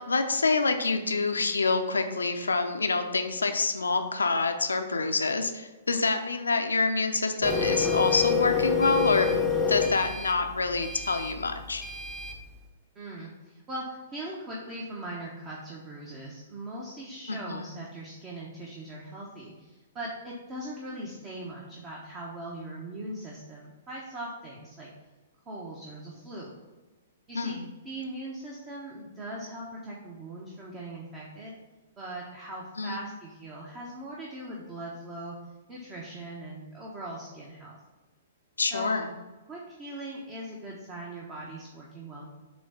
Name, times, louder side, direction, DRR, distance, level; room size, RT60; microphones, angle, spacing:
voice 1, 0.0-9.3 9.7-11.8 17.3-17.7 27.3-27.6 32.8-33.0 38.6-39.1, left 3 dB, 75° left, 6 dB, 0.7 m, -27 dB
Printer, 7.4-12.4, left 5 dB, ahead, 0.9 m, -28 dB
voice 2, 12.9-24.9 25.5-26.5 27.3-27.6 27.8-31.5 32.0-35.4 35.7-37.8 38.7-39.0 39.5-42.3, right 1 dB, 25° right, -3 dB, 1.2 m, -40 dB
7.7 x 3.1 x 5.7 m, 1.2 s
figure-of-eight pair, 115°, 0 cm